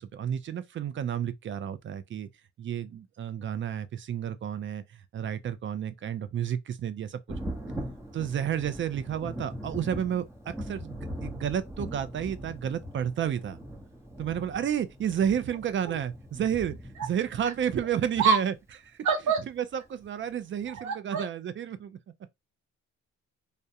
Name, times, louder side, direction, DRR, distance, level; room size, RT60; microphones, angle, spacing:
voice 1, 0.0-2.3 2.6-7.2 8.1-13.6 14.2-18.5 18.9-19.1 19.5-22.0, right 9 dB, 40° right, 0.4 m, -31 dB
Thunder, 7.3-18.7 20.0-20.1 20.6-20.7, equal, 10° right, 0.8 m, -41 dB
voice 2, 19.0-19.4 20.7-21.2, right 5 dB, 70° right, 1.0 m, -25 dB
2.3 x 2.1 x 2.7 m
cardioid pair, 90°, 30 cm